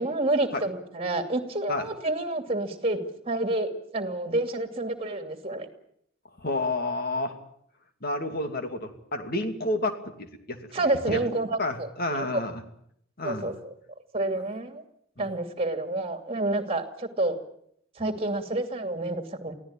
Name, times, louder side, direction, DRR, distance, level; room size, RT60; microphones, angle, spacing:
voice 1, 0.0-5.7 10.7-12.4 13.2-13.7 14.1-14.8 15.2-17.4 18.0-19.5, right 2 dB, 30° right, 7 dB, 2.7 m, -29 dB
voice 2, 6.4-7.4 8.0-10.6 11.1-11.2 11.6-12.6 13.2-13.5 15.2-15.3, left 2 dB, 50° left, 6 dB, 2.8 m, -30 dB
24.0 x 16.0 x 8.8 m, 0.69 s
head